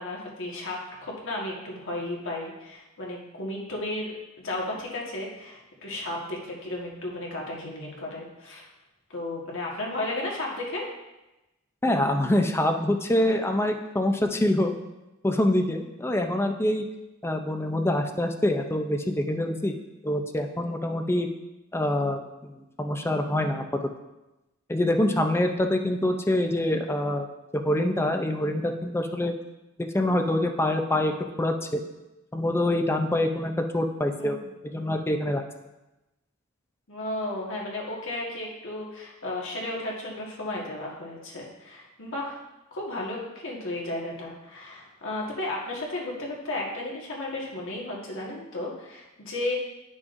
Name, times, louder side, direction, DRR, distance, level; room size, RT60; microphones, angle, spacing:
voice 1, 0.0-4.2 4.4-8.7 9.1-10.9 34.2-34.5 36.9-42.4 42.7-49.5, left 1 dB, 65° left, -3 dB, 1.7 m, -34 dB
voice 2, 11.8-14.7 15.2-16.9 17.2-19.7 20.0-21.3 21.7-23.6 24.7-27.3 27.5-29.3 29.8-31.8 32.3-34.4 34.7-35.4, left 1 dB, 10° left, 5 dB, 0.5 m, -25 dB
10.5 x 6.1 x 2.6 m, 0.99 s
head